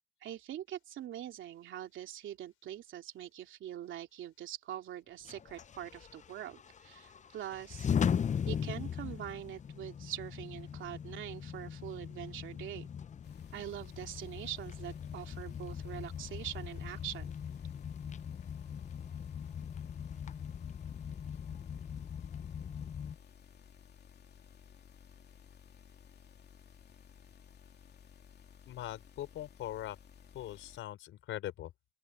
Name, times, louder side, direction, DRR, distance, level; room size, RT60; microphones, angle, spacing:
voice 1, 0.2-7.9 8.4-12.9 13.5-17.3, right 11 dB, 75° right, 2.9 m, -43 dB
sound 1, 5.2-23.1, left 7 dB, 40° left, 0.6 m, -39 dB
sound 2, 13.2-30.8, left 8 dB, 55° left, 2.9 m, -57 dB
voice 2, 28.7-30.0 30.3-31.7, left 13 dB, 85° left, 4.6 m, -41 dB
open air
cardioid pair, 90°, 20 cm